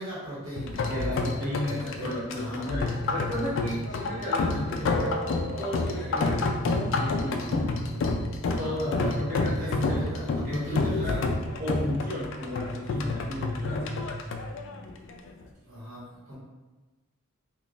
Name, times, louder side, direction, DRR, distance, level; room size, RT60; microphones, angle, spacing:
voice 1, 0.0-1.3 1.7-2.6 8.4-9.1 9.5-11.0 11.3-11.5 12.9-13.2 15.3-16.3, right 1 dB, 70° right, -8 dB, 1.3 m, -39 dB
sound 1, 0.6-15.4, left 3 dB, 65° left, 0.3 m, -29 dB
voice 2, 0.9-5.1 5.6-7.8 8.6-10.1 10.4-11.3 11.6-14.0, left 1 dB, 40° right, -10 dB, 1.0 m, -33 dB
3.7 x 2.5 x 2.4 m, 1.2 s
head